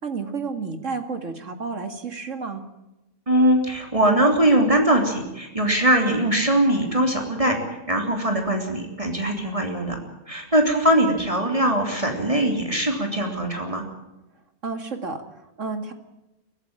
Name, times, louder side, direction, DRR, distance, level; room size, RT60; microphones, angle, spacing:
voice 1, 0.0-2.6 14.6-15.9, right 4 dB, 60° right, 7 dB, 2.5 m, -31 dB
voice 2, 3.3-7.6 7.9-10.0 10.3-13.8, right 1 dB, 20° right, 2 dB, 3.4 m, -21 dB
23.0 x 15.0 x 8.9 m, 0.97 s
omnidirectional pair, 1.5 m